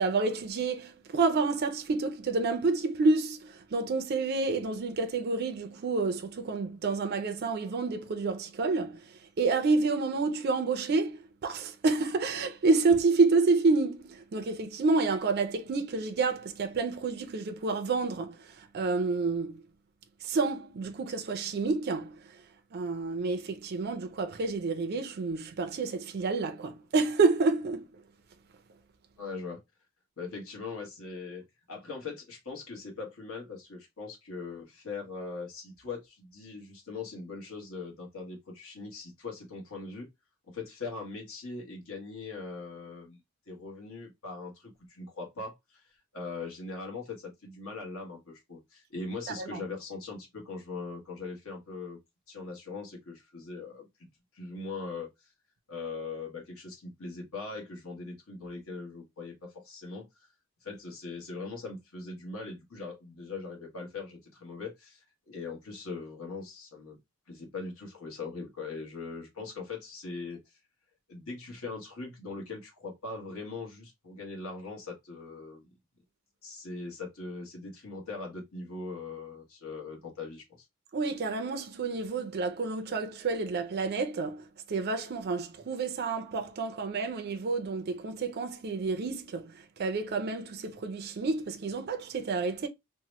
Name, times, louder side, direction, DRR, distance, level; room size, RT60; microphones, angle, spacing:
voice 1, 0.0-19.6 20.2-22.4 22.7-28.0 49.3-49.6 80.9-92.7, right 3 dB, 45° right, 0.4 m, -29 dB
voice 2, 29.2-29.6 30.2-40.1 40.5-43.2 43.5-45.8 46.1-52.0 52.3-53.9 54.3-55.3 55.7-60.3 60.6-67.0 67.3-70.6 71.1-75.7 76.4-80.4, left 3 dB, 70° left, 1.1 m, -41 dB
2.9 x 2.1 x 2.9 m
head